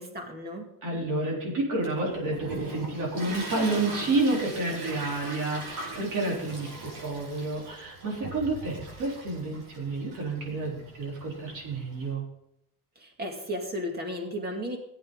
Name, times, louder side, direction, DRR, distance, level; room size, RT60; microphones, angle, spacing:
voice 1, 0.0-0.6 13.0-14.8, equal, 30° right, 2 dB, 2.4 m, -34 dB
voice 2, 0.8-12.2, right 2 dB, 60° right, -3 dB, 3.8 m, -30 dB
Toilet flush, 1.8-12.1, right 2 dB, 80° right, 5.3 m, -41 dB
17.0 x 8.7 x 3.9 m, 0.79 s
cardioid pair, 165°, 34 cm